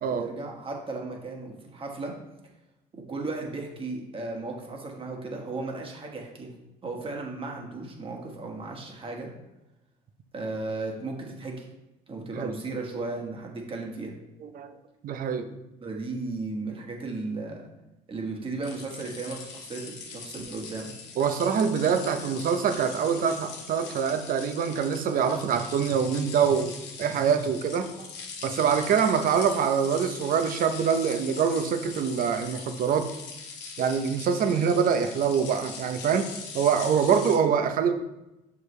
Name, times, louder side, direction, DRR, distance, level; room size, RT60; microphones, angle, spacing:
voice 1, 0.1-2.1 2.9-6.5 6.8-9.3 10.3-11.6 12.1-14.1 15.8-17.6 18.1-20.9, right 3 dB, 30° right, 0 dB, 1.4 m, -35 dB
voice 2, 14.4-14.8 15.0-15.5 21.2-28.1 28.4-33.1 33.8-36.3 36.5-37.9, right 7 dB, 55° right, 8 dB, 0.7 m, -25 dB
sound 1, 18.6-37.4, left 5 dB, 80° left, 1.1 m, -41 dB
6.6 x 4.9 x 3.2 m, 0.96 s
cardioid pair, 110°, 17 cm